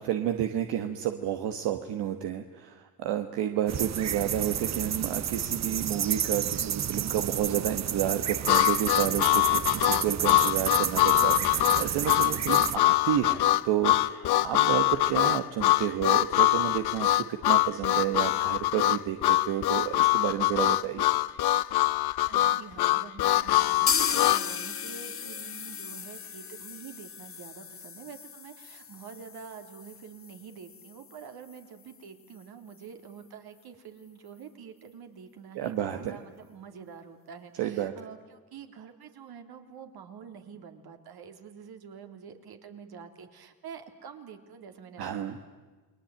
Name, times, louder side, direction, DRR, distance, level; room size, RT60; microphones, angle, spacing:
voice 1, 0.0-21.1 35.5-36.1 37.6-37.9 45.0-45.4, right 11 dB, 90° right, 7 dB, 1.4 m, -30 dB
sound 1, 3.7-12.8, right 9 dB, 45° right, 0.8 m, -31 dB
Harmonica, 8.5-24.5, left 16 dB, 75° left, 0.8 m, -24 dB
voice 2, 22.0-45.4, right 7 dB, 65° right, 6 dB, 3.0 m, -47 dB
sound 2, 23.9-31.6 31.9-32.0 32.3-32.4 32.8-32.9, left 7 dB, 35° left, 0.9 m, -35 dB
29.5 x 21.0 x 8.9 m, 1.3 s
cardioid pair, 80°, 39 cm